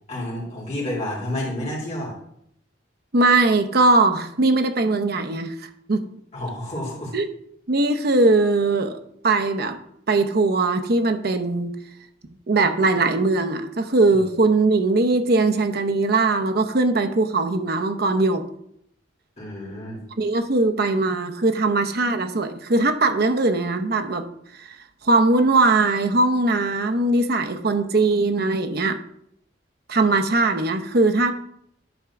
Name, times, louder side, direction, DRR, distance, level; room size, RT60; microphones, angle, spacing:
voice 1, 0.1-2.2 6.3-7.2 14.2-14.3 19.4-20.0, left 1 dB, 35° left, -3 dB, 2.8 m, -30 dB
voice 2, 3.1-5.5 5.9-6.0 7.1-7.3 7.7-9.0 9.2-9.8 10.1-11.7 12.5-18.4 20.2-24.3 24.6-24.8 25.0-29.0 29.9-31.3, right 3 dB, 55° right, 8 dB, 0.8 m, -20 dB
10.5 x 3.7 x 5.9 m, 0.73 s
head